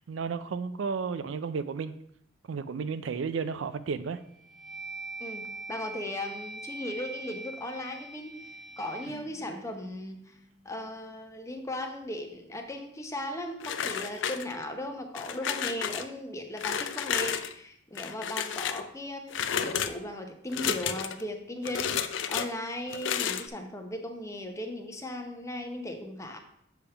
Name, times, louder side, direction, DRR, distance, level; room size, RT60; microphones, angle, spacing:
voice 1, 0.1-1.9 2.5-4.2, right 5 dB, 80° right, 13 dB, 0.4 m, -33 dB
sound 1, 3.5-3.7 4.2-10.4, right 3 dB, 5° right, 1.4 m, -43 dB
voice 2, 5.2-10.3 10.6-26.4, left 1 dB, 15° left, 4 dB, 0.8 m, -37 dB
sound 2, 13.6-14.7 15.1-16.0 16.6-17.5 17.9-18.8 19.3-19.9 20.5-21.2 21.6-22.5 22.9-23.5, left 8 dB, 70° left, 0.4 m, -31 dB
7.0 x 3.5 x 5.6 m, 0.72 s
head